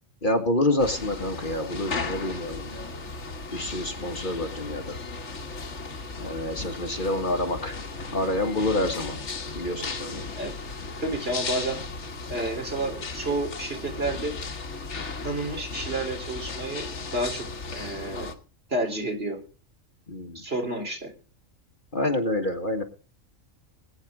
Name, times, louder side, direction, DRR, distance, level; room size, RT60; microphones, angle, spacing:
voice 1, 0.2-2.9 3.5-5.0 6.2-7.8 8.1-9.2 9.5-10.3 20.1-20.4 21.9-22.8, left 1 dB, 40° left, 4 dB, 2.0 m, -27 dB
sound 1, 0.8-18.3, left 3 dB, 60° left, 1.8 m, -36 dB
voice 2, 11.0-11.8 12.3-14.3 15.2-18.3 18.7-19.4 20.3-21.1, right 2 dB, 45° right, 2 dB, 3.9 m, -30 dB
20.5 x 9.5 x 3.7 m, 0.37 s
omnidirectional pair, 1.4 m